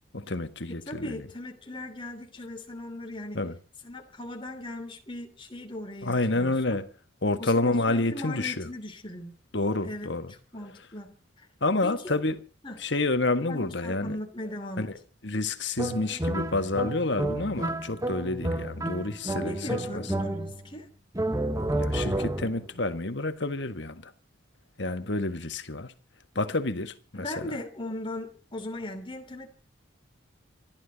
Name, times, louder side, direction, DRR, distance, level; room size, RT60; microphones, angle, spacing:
voice 1, 0.1-1.2 3.3-3.6 6.0-6.9 7.2-8.7 9.5-10.3 11.6-12.4 12.8-14.2 14.8-14.9 15.2-20.0 21.7-24.1 24.8-25.9 26.3-27.5, left 2 dB, 60° left, 1.5 m, -29 dB
voice 2, 0.9-3.4 3.8-6.8 7.4-9.4 9.8-10.2 10.5-11.5 11.8-12.2 12.6-12.8 13.5-14.9 19.4-20.9 27.1-29.5, left 1 dB, 25° left, 2.9 m, -38 dB
sound 1, 15.8-20.7 21.1-22.7, right 1 dB, 15° right, 1.0 m, -31 dB
26.5 x 12.0 x 4.1 m
head